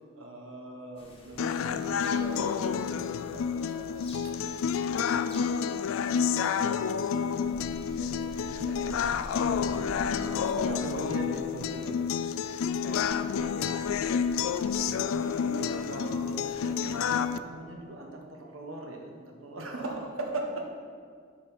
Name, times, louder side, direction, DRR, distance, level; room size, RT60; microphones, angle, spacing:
voice 1, 0.1-4.3 4.9-5.4 5.7-9.4 10.0-12.0 14.9-20.7, right 2 dB, 85° right, 1 dB, 1.3 m, -41 dB
sound 1, 0.9-17.3, equal, 30° left, 1.3 m, -50 dB
sound 2, 1.4-17.4, left 7 dB, 85° left, 0.3 m, -29 dB
voice 2, 9.4-10.9 12.7-14.5, equal, ahead, 4 dB, 0.5 m, -47 dB
9.3 x 4.7 x 5.7 m, 2.1 s
head